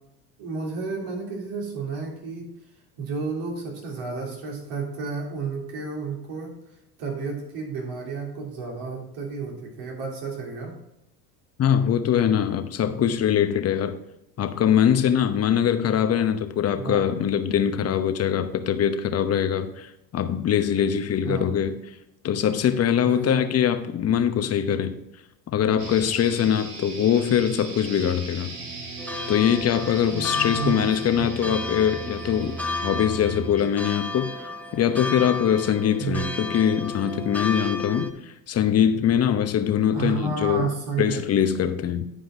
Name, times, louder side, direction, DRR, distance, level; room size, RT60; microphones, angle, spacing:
voice 1, 0.4-2.5 3.0-6.6 7.0-10.8 16.8-17.1 21.2-21.6 23.0-23.4 30.0-31.6 36.0-36.3 39.9-41.2, right 4 dB, 65° right, 3.4 m, -31 dB
voice 2, 11.6-14.0 14.4-21.7 22.2-24.9 25.5-28.5 29.3-32.6 32.8-40.7 41.0-42.1, left 9 dB, 35° left, 0.9 m, -23 dB
sound 1, 25.8-33.8, right 3 dB, 85° right, 2.5 m, -37 dB
sound 2, 29.0-38.1, left 3 dB, 5° left, 0.6 m, -33 dB
10.0 x 5.1 x 5.0 m
hypercardioid pair, 90°, 46 cm